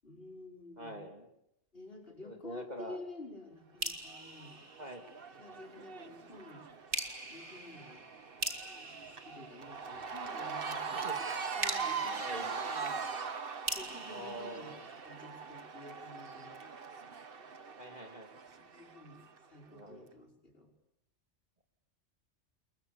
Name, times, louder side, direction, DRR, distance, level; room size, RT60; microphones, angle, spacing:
voice 1, 0.0-1.0 1.7-4.7 5.4-6.7 7.3-8.1 8.6-11.1 11.6-13.1 13.7-14.7 15.0-16.6 18.5-20.7, left 2 dB, 55° left, 1 dB, 6.1 m, -51 dB
voice 2, 0.8-1.3 2.2-3.0 4.8-5.0 10.9-11.2 12.2-12.5 14.1-14.8 17.8-18.3 19.7-20.1, right 1 dB, 35° right, 5 dB, 3.2 m, -45 dB
sound 1, 3.8-5.5 6.9-10.2 11.6-15.5, right 2 dB, 75° right, 3.5 m, -42 dB
Cheering / Crowd, 4.1-19.4, right 5 dB, 55° right, 1.5 m, -41 dB
29.0 x 22.5 x 7.0 m, 0.78 s
omnidirectional pair, 1.2 m